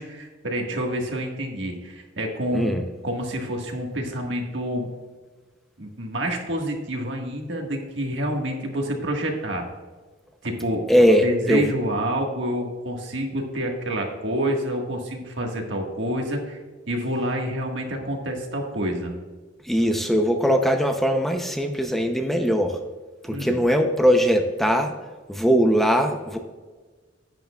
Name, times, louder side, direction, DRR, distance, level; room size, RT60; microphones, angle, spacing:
voice 1, 0.0-2.7 3.0-4.9 5.8-9.6 10.4-10.8 11.2-16.6 16.9-19.1 23.3-23.6, equal, 70° right, 1 dB, 1.6 m, -28 dB
voice 2, 2.5-2.8 10.9-11.7 19.6-22.8 23.2-24.9 25.3-26.4, equal, ahead, 4 dB, 0.6 m, -20 dB
10.5 x 9.1 x 2.3 m, 1.4 s
head